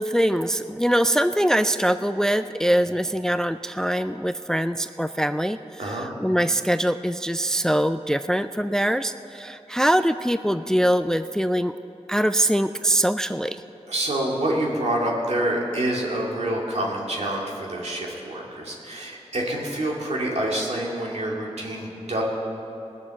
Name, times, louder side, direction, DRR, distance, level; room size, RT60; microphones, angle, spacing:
voice 1, 0.0-5.6 6.2-11.8 12.1-13.6, equal, 5° left, 11 dB, 0.3 m, -23 dB
voice 2, 13.9-22.2, right 1 dB, 70° right, -2 dB, 2.4 m, -27 dB
20.0 x 6.8 x 7.1 m, 2.8 s
wide cardioid pair, 95°, 12 cm